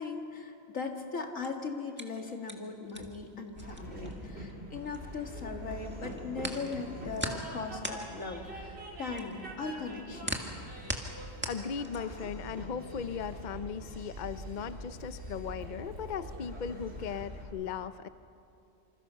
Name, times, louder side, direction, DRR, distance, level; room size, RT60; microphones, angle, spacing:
voice 1, 0.0-10.5, left 4 dB, 75° left, 3 dB, 2.4 m, -39 dB
sound 1, 1.2-5.4 5.7-12.3, equal, 10° right, 1.7 m, -40 dB
Train, 3.6-17.4, right 1 dB, 50° right, 4.2 m, -44 dB
voice 2, 11.5-18.1, left 7 dB, 45° left, 12 dB, 0.6 m, -37 dB
27.0 x 26.0 x 5.6 m, 2.6 s
omnidirectional pair, 1.4 m